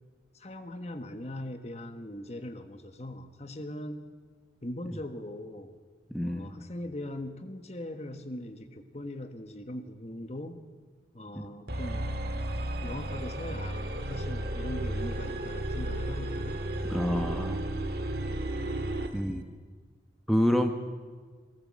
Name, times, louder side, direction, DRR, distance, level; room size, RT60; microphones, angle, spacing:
voice 1, 0.3-4.0 4.6-5.7 6.2-10.6 11.1-12.1 12.8-16.6, left 1 dB, 35° left, 8 dB, 1.3 m, -40 dB
voice 2, 6.1-6.5 11.3-11.5 16.9-17.6 19.1-19.4 20.3-20.7, equal, ahead, 4 dB, 1.1 m, -27 dB
sound 1, 11.7-19.2, right 1 dB, 55° right, 1.7 m, -33 dB
22.5 x 17.5 x 7.5 m, 1.5 s
head